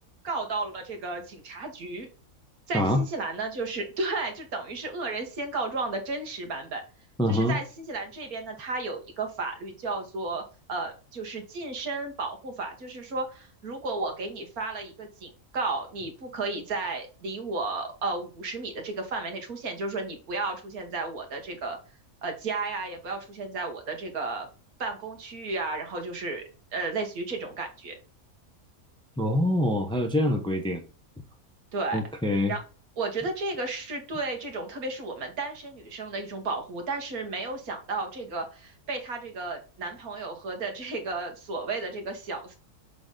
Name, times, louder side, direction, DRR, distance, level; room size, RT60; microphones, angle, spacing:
voice 1, 0.2-2.1 2.7-6.8 7.3-10.4 10.7-21.8 22.2-24.5 24.8-26.4 26.7-28.0 31.7-32.0 32.5-32.6 33.0-42.6, right 3 dB, 90° right, 1.9 m, -33 dB
voice 2, 2.7-3.0 7.2-7.6 29.2-30.8 31.9-32.5, left 1 dB, 5° left, 0.7 m, -25 dB
7.0 x 3.8 x 3.8 m
omnidirectional pair, 1.5 m